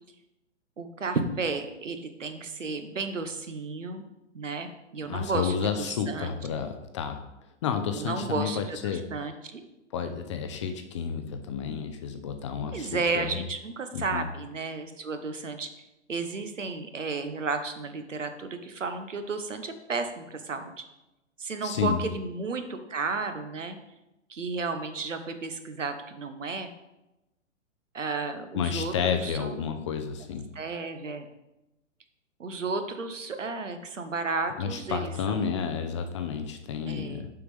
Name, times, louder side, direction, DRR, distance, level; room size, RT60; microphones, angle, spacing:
voice 1, 0.8-4.0 4.3-6.3 7.9-9.6 12.7-15.7 16.1-20.7 21.4-23.8 24.3-26.7 27.9-29.5 30.5-31.3 32.4-35.4 36.9-37.2, right 4 dB, 80° right, 8 dB, 0.9 m, -33 dB
voice 2, 5.0-7.2 7.6-9.1 9.9-13.3 13.9-14.3 21.6-22.0 28.5-30.5 34.6-37.3, left 7 dB, 25° left, 7 dB, 0.4 m, -31 dB
6.9 x 5.7 x 3.4 m, 0.95 s
figure-of-eight pair, 110°, 37 cm